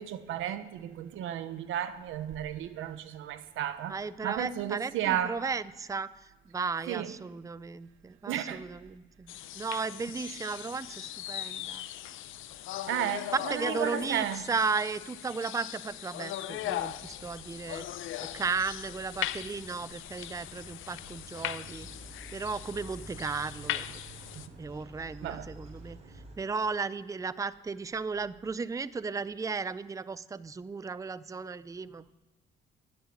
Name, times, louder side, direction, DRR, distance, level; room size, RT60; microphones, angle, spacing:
voice 1, 0.0-4.0 4.2-5.4 6.9-7.1 8.3-8.6 12.9-14.4 25.2-25.5, right 11 dB, 85° right, 1.0 m, -33 dB
voice 2, 3.9-11.8 13.3-17.8 18.3-21.9 22.3-24.0 24.6-26.0 26.4-32.1, right 4 dB, 15° right, 0.5 m, -35 dB
sound 1, 9.3-24.5, left 13 dB, 80° left, 0.7 m, -39 dB
sound 2, 16.5-26.4, right 2 dB, 30° right, 6.1 m, -50 dB
12.5 x 10.5 x 9.7 m
cardioid pair, 90°, 20 cm